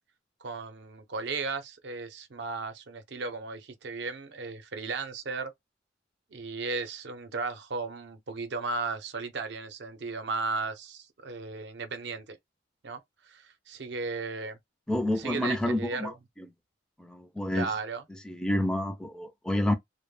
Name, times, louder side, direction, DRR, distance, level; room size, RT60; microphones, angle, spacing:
voice 1, 0.4-5.5 6.3-12.4 12.8-14.6 15.2-16.1 17.5-18.0, right 4 dB, 65° right, 0.6 m, -35 dB
voice 2, 14.9-16.1 17.0-17.7 18.3-19.7, left 1 dB, 5° left, 0.3 m, -28 dB
2.1 x 2.1 x 3.1 m
head